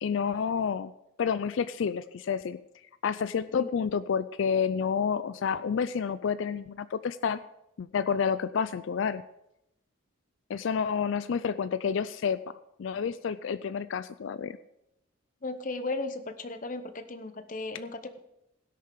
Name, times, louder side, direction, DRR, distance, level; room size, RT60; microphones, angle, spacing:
voice 1, 0.0-0.9 1.2-2.6 3.0-7.4 7.8-9.2 10.5-12.4 12.8-14.6, left 6 dB, 65° left, 14 dB, 0.4 m, -29 dB
voice 2, 15.4-18.2, left 2 dB, 40° left, 9 dB, 0.7 m, -36 dB
16.5 x 6.7 x 5.1 m, 0.83 s
head